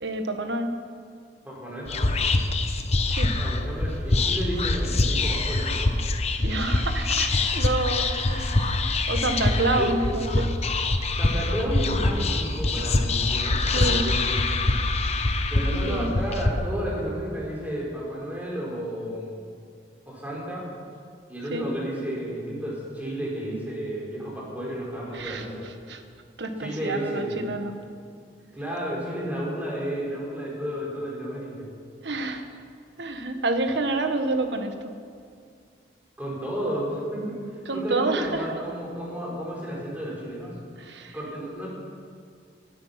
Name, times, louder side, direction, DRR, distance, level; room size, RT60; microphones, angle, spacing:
voice 1, 0.0-0.7 3.1-3.3 6.4-10.5 13.6-14.1 15.8-16.2 21.5-21.6 25.1-26.0 26.4-27.7 32.0-32.4 33.0-34.8 37.6-38.6 40.8-41.2, right 2 dB, 75° right, 6 dB, 1.5 m, -28 dB
voice 2, 1.4-2.1 3.3-6.0 9.8-9.9 11.1-14.6 15.5-19.4 20.1-20.6 21.3-25.6 26.6-27.4 28.5-31.7 36.2-40.5 41.1-41.7, equal, 10° right, -4 dB, 4.8 m, -32 dB
Whispering, 1.9-16.5, left 2 dB, 35° left, 1.0 m, -24 dB
19.0 x 12.0 x 5.9 m, 2.2 s
head